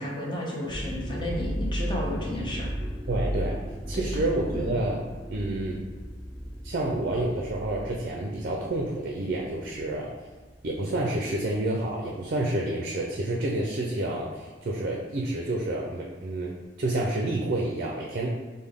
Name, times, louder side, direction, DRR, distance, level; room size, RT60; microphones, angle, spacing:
voice 1, 0.0-2.7 3.9-4.0 4.5-4.7, left 1 dB, 25° left, -4 dB, 0.9 m, -32 dB
sound 1, 0.7-10.1 10.5-10.9 11.6-11.9, equal, ahead, 0.5 m, -35 dB
voice 2, 3.1-3.6 3.9-5.0 5.3-5.8 6.6-10.1 10.6-18.4, right 1 dB, 55° right, -1 dB, 0.5 m, -29 dB
5.3 x 2.2 x 3.5 m, 1.3 s
head